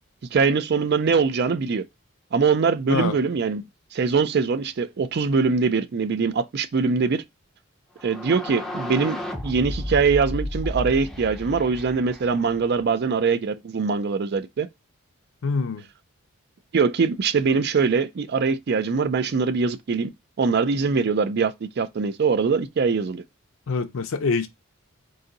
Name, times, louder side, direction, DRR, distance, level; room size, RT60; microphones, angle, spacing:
voice 1, 0.3-1.8 2.3-3.6 3.9-7.2 8.0-9.2 9.4-14.7 16.7-20.1 20.4-23.2, right 5 dB, 50° right, 0.4 m, -22 dB
sound 1, 8.0-12.8, left 1 dB, ahead, 0.5 m, -33 dB
voice 2, 15.4-15.8 23.7-24.5, left 4 dB, 65° left, 0.5 m, -25 dB
4.0 x 2.6 x 3.8 m
head